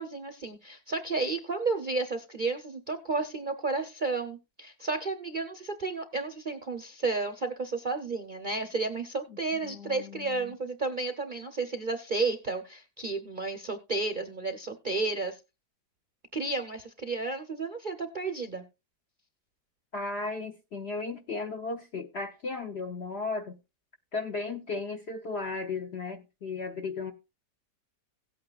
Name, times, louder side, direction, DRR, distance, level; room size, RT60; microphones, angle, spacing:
voice 1, 0.0-15.4 16.3-18.6, right 3 dB, 45° right, 0.6 m, -32 dB
voice 2, 9.6-10.6 19.9-23.6 24.1-27.1, left 3 dB, 55° left, 0.7 m, -35 dB
17.0 x 8.6 x 2.3 m
omnidirectional pair, 1.9 m